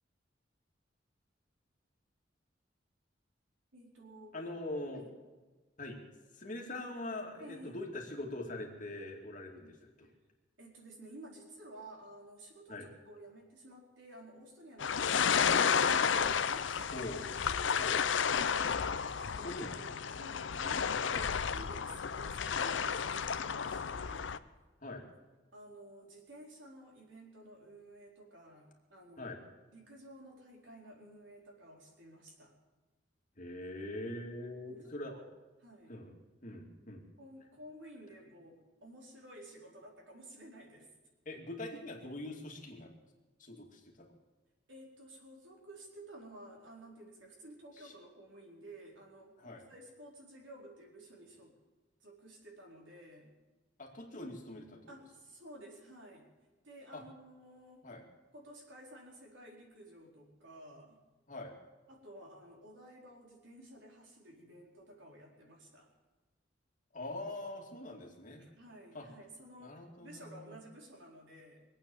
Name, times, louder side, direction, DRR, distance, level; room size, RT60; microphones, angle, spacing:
voice 1, 3.7-4.4 4.9-5.1 7.4-7.8 10.0-10.1 10.6-17.1 17.6-24.3 25.5-29.4 29.7-32.5 34.7-35.2 35.6-36.0 37.2-40.9 44.7-51.5 52.0-53.3 54.9-56.3 56.6-57.9 58.3-61.0 61.9-65.9 68.4-71.6, right 1 dB, 80° right, -1 dB, 4.4 m, -53 dB
voice 2, 4.3-5.0 5.8-6.0 6.3-10.1 12.7-12.9 16.9-17.2 17.8-18.0 19.4-19.8 21.1-21.3 24.8-25.0 29.2-29.4 33.4-35.1 35.9-36.1 36.4-37.0 41.3-42.9 43.4-44.1 47.8-47.9 49.4-49.6 53.8-54.9 56.9-57.0 57.8-58.0 61.3-61.5 66.9-68.4 68.9-69.1 69.6-70.6, left 2 dB, 45° left, 0 dB, 2.5 m, -43 dB
sound 1, 14.8-24.4, left 7 dB, 75° left, 0.6 m, -32 dB
23.0 x 8.8 x 7.1 m, 1.2 s
head